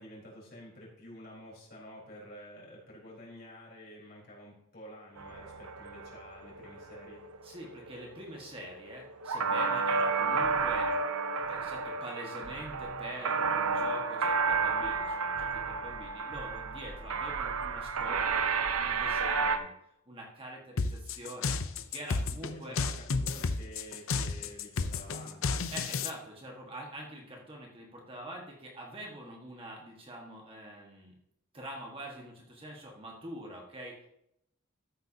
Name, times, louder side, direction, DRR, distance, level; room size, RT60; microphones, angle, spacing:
voice 1, 0.0-7.2 22.4-25.7, equal, 45° left, -4 dB, 4.2 m, -50 dB
sound 1, 5.2-19.6, right 5 dB, 90° right, 0.8 m, -31 dB
voice 2, 7.4-10.9 11.5-18.5 18.8-19.7 20.1-21.6 21.9-22.8 25.7-31.1 31.5-34.1, right 1 dB, 25° right, -1 dB, 1.5 m, -45 dB
sound 2, 20.8-26.1, left 4 dB, 70° left, 0.6 m, -32 dB
13.5 x 7.8 x 2.8 m, 0.77 s
head